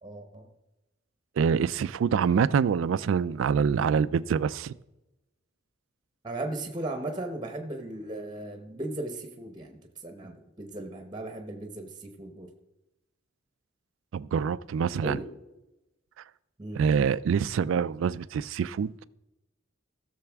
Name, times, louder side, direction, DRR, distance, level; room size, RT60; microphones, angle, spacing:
voice 1, 0.0-0.5 6.2-12.5 15.0-15.3 16.6-16.8, right 2 dB, 20° right, 5 dB, 0.8 m, -37 dB
voice 2, 1.4-4.7 14.1-15.2 16.8-19.0, right 6 dB, 75° right, 18 dB, 0.3 m, -25 dB
15.5 x 6.7 x 3.5 m, 0.98 s
head